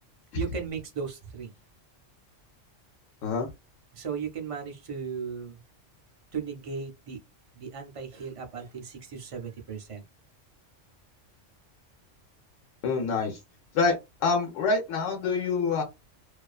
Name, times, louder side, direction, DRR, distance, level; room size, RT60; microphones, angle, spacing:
voice 1, 0.3-1.5 3.9-5.6 6.3-7.2 7.5-10.0, right 6 dB, 50° right, 0.4 m, -36 dB
voice 2, 12.8-13.4 13.7-14.0 14.2-15.8, left 4 dB, 80° left, 1.0 m, -26 dB
2.5 x 2.3 x 2.3 m
omnidirectional pair, 1.3 m